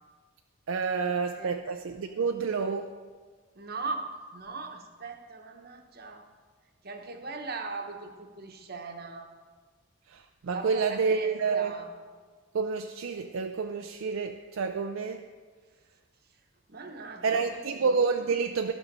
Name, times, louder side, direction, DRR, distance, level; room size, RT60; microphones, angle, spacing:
voice 1, 0.7-3.0 10.1-11.7 12.5-15.2 17.2-18.7, right 5 dB, 65° right, 6 dB, 0.4 m, -29 dB
voice 2, 3.6-6.3 6.8-9.3 10.5-11.9 16.7-17.8, right 3 dB, 45° right, 4 dB, 1.0 m, -39 dB
12.5 x 6.3 x 5.3 m, 1.5 s
head